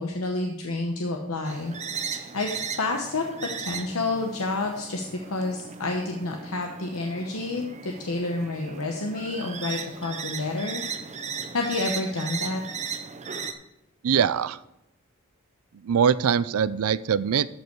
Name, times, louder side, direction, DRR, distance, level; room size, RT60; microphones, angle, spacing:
voice 1, 0.0-1.8 2.1-10.8 11.5-12.6, left 2 dB, 70° left, 2 dB, 1.0 m, -29 dB
sound 1, 1.4-13.5, right 6 dB, 35° right, 0.7 m, -37 dB
voice 2, 14.0-14.6 15.8-17.5, right 7 dB, 80° right, 17 dB, 0.4 m, -22 dB
13.5 x 5.4 x 4.6 m, 0.87 s
head